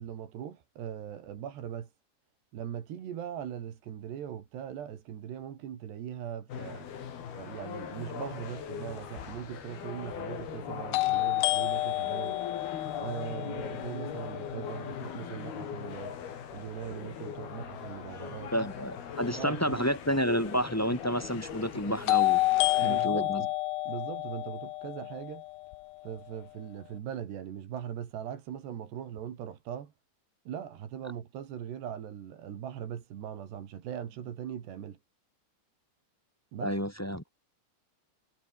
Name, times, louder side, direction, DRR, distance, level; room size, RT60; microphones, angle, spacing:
voice 1, 0.0-1.9 2.5-6.9 7.3-12.4 13.0-16.2 16.5-18.5 19.3-19.8 22.8-23.5 23.9-25.4 26.0-29.9 30.5-35.0 36.5-36.7, right 9 dB, 75° right, 4.7 m, -40 dB
sound 1, 6.5-23.1, left 8 dB, 65° left, 5.0 m, -41 dB
sound 2, 9.0-9.1 10.9-14.8 22.1-26.1, left 19 dB, 80° left, 2.2 m, -29 dB
voice 2, 18.5-23.4 36.6-37.2, equal, 5° left, 1.3 m, -30 dB
omnidirectional pair, 4.8 m